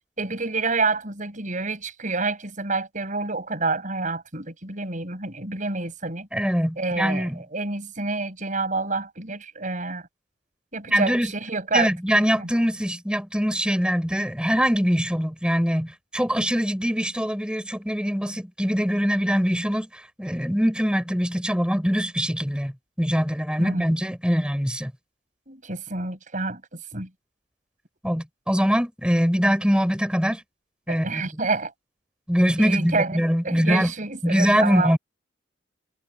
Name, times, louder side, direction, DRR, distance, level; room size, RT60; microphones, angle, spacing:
voice 1, 0.2-6.3 6.8-10.0 10.7-11.9 12.4-12.5 23.6-23.9 25.5-27.1 30.9-31.7 32.6-35.0, right 3 dB, 45° right, 7.3 m, -28 dB
voice 2, 6.3-7.4 10.9-11.3 11.7-22.7 23.0-24.9 28.0-30.4 30.9-31.4 32.3-33.9 34.2-35.0, equal, 5° right, 6.7 m, -23 dB
head